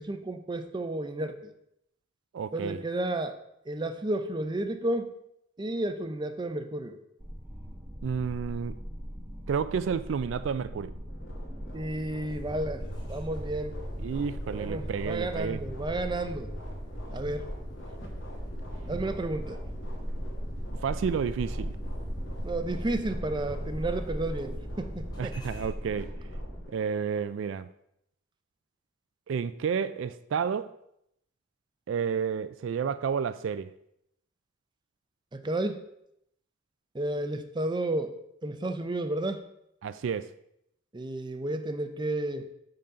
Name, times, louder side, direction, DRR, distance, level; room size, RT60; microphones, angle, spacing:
voice 1, 0.0-1.5 2.5-3.4 3.7-5.1 5.6-7.0 11.7-12.8 13.1-13.8 14.5-16.5 17.1-17.5 18.9-19.6 22.4-25.3 35.3-35.8 36.9-38.1 38.4-39.4 40.9-42.5, right 2 dB, 25° right, 0.5 m, -32 dB
voice 2, 2.3-2.8 8.0-8.8 9.5-10.9 14.0-15.6 20.8-21.8 25.2-26.1 26.7-27.7 29.3-30.7 31.9-33.7 39.8-40.3, right 6 dB, 75° right, 0.3 m, -31 dB
sound 1, 7.2-26.6, equal, 10° right, 1.1 m, -39 dB
sound 2, 11.1-27.2, left 1 dB, 70° left, 1.8 m, -50 dB
sound 3, 12.3-25.7, equal, 20° left, 1.6 m, -43 dB
8.6 x 3.9 x 5.6 m
head